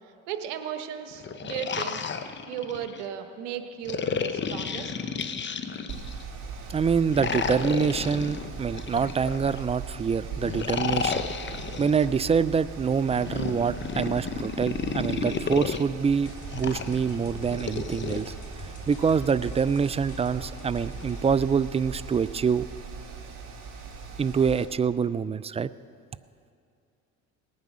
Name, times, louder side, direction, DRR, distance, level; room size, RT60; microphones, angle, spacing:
voice 1, 0.3-2.0 2.5-4.9, right 9 dB, 90° right, 8 dB, 1.1 m, -35 dB
sound 1, 1.1-3.0 3.9-6.2 7.1-9.6 10.4-12.1 13.0-15.8 16.5-18.2, left 6 dB, 30° left, 0.9 m, -32 dB
Mechanical fan, 5.9-24.6, right 5 dB, 60° right, 2.5 m, -40 dB
voice 2, 6.7-18.3 18.9-22.6 24.2-25.7, right 6 dB, 20° right, 17 dB, 0.3 m, -26 dB
sound 2, 16.2-21.4, left 3 dB, 55° left, 2.3 m, -44 dB
18.5 x 9.6 x 6.1 m, 2.4 s
supercardioid pair, 75°, 35 cm